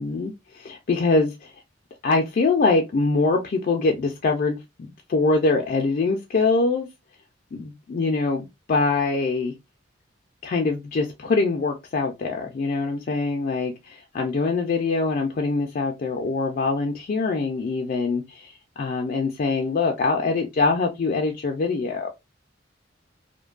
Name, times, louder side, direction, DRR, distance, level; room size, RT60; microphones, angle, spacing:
voice 1, 0.0-1.5 2.0-4.6 5.1-6.9 7.5-9.5 10.4-22.1, left 3 dB, 50° left, 0.4 m, -23 dB
2.6 x 2.2 x 2.4 m
head